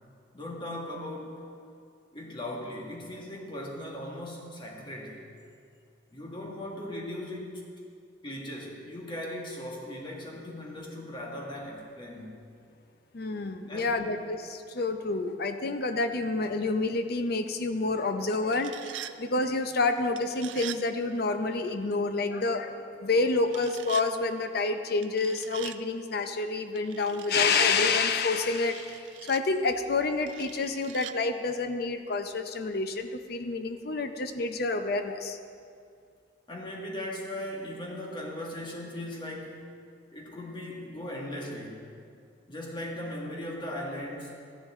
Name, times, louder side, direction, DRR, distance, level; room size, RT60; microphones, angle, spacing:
voice 1, 0.3-1.4 2.1-5.3 6.1-7.7 8.2-12.4 13.7-14.1 36.5-39.6 40.1-41.9 42.5-44.4, left 1 dB, 25° left, -2 dB, 1.8 m, -38 dB
voice 2, 13.1-18.8 19.2-22.7 23.0-35.4, left 3 dB, 55° left, 8 dB, 0.6 m, -28 dB
sound 1, 18.3-19.1 20.2-20.8 23.5-24.1 25.0-25.8 26.8-27.7 28.5-29.4 30.3-31.1, right 12 dB, 85° right, 0.4 m, -42 dB
14.0 x 10.5 x 3.7 m, 2.3 s
head